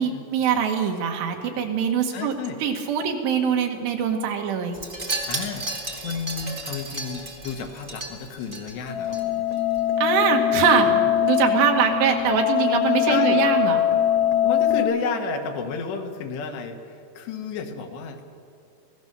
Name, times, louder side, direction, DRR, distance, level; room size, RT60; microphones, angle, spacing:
voice 1, 0.0-2.3 2.6-4.8 10.0-10.9 11.2-13.8, right 7 dB, 75° right, 3 dB, 3.7 m, -23 dB
voice 2, 2.1-2.6 5.2-9.5 10.8-11.1 13.0-13.4 14.4-18.2, left 5 dB, 75° left, 4 dB, 3.6 m, -32 dB
Wind chime, 4.7-9.2 9.5-9.8 10.1-10.2, right 2 dB, 60° right, 0.5 m, -33 dB
sound 1, 8.9-14.8, left 10 dB, 60° left, 2.9 m, -22 dB
24.0 x 16.5 x 6.7 m, 2.5 s
omnidirectional pair, 5.1 m